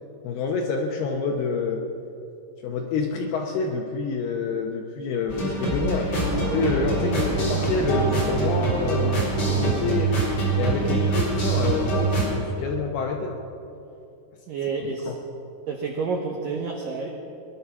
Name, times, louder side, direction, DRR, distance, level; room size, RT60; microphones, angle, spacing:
voice 1, 0.2-1.8 2.6-6.1 6.5-10.1 10.6-13.4 14.8-15.2, left 4 dB, 75° left, 2 dB, 2.4 m, -28 dB
sound 1, 5.3-12.3, right 3 dB, 35° left, 4.1 m, -24 dB
sound 2, 6.1-12.6, right 2 dB, 60° right, 1.9 m, -35 dB
voice 2, 14.5-15.1 15.7-17.1, right 5 dB, 85° right, 1 dB, 2.0 m, -29 dB
20.5 x 11.5 x 5.9 m, 2.8 s
omnidirectional pair, 5.6 m